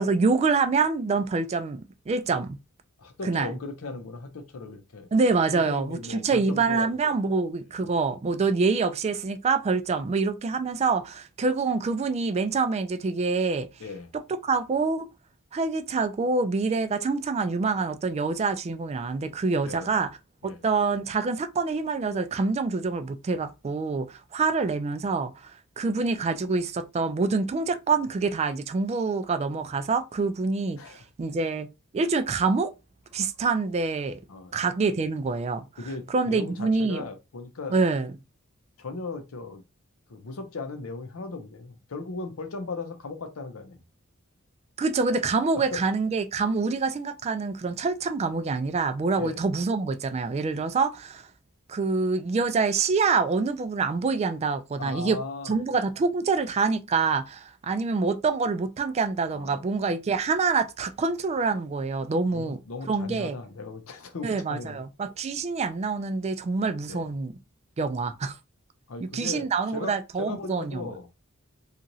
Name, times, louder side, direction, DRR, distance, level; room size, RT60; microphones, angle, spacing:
voice 1, 0.0-2.6 3.2-3.5 5.1-13.7 14.4-15.1 15.5-20.1 20.4-31.7 31.9-32.7 33.1-34.2 34.5-35.6 36.1-37.0 37.7-38.1 44.8-51.3 51.7-55.2 55.5-62.6 62.9-63.4 64.2-67.3 67.8-68.4 69.0-70.9, right 4 dB, 30° right, 0.3 m, -26 dB
voice 2, 3.0-5.1 5.5-7.2 13.8-14.1 19.6-19.9 20.4-20.6 30.8-31.0 34.3-34.5 35.8-37.7 38.8-39.6 40.1-43.8 45.5-45.8 49.2-49.4 54.8-55.5 59.3-59.6 62.3-64.8 66.9-67.1 68.9-69.5 69.7-71.1, left 3 dB, 80° left, 0.6 m, -37 dB
2.9 x 2.4 x 2.6 m
head